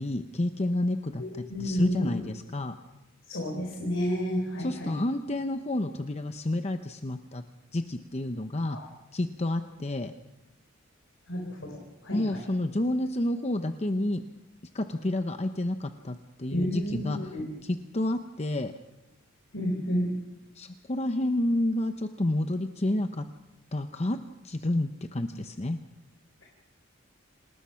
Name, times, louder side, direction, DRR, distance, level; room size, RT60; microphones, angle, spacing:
voice 1, 0.0-2.7 4.6-7.4 7.7-8.8 9.1-10.1 12.1-14.2 14.7-17.2 17.6-18.7 20.5-23.2 23.7-24.2 24.4-25.8, left 1 dB, 30° left, 8 dB, 0.8 m, -30 dB
voice 2, 1.2-2.3 3.3-4.9 8.7-8.8 11.3-12.4 16.5-17.5 19.5-20.1, equal, 65° left, 1 dB, 4.0 m, -31 dB
27.5 x 19.5 x 5.8 m, 0.99 s
head